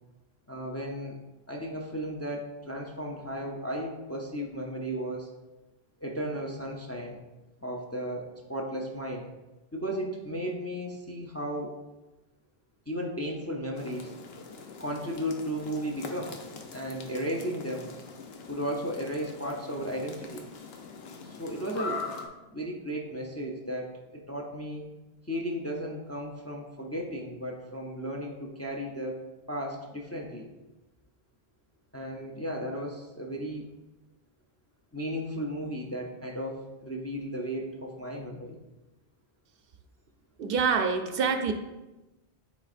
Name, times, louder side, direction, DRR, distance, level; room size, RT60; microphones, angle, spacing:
voice 1, 0.5-1.2 1.5-5.3 6.0-7.2 7.6-9.3 9.7-11.8 12.9-14.1 14.8-16.3 16.7-17.9 18.5-20.4 21.2-22.0 22.4-24.8 25.3-29.2 29.5-30.5 31.9-33.7 34.9-38.6, equal, 20° left, 1 dB, 0.5 m, -35 dB
sound 1, 13.8-22.3, left 4 dB, 75° left, 0.9 m, -42 dB
voice 2, 40.4-41.5, right 5 dB, 70° right, 6 dB, 0.7 m, -26 dB
9.2 x 4.1 x 2.5 m, 1.1 s
omnidirectional pair, 1.0 m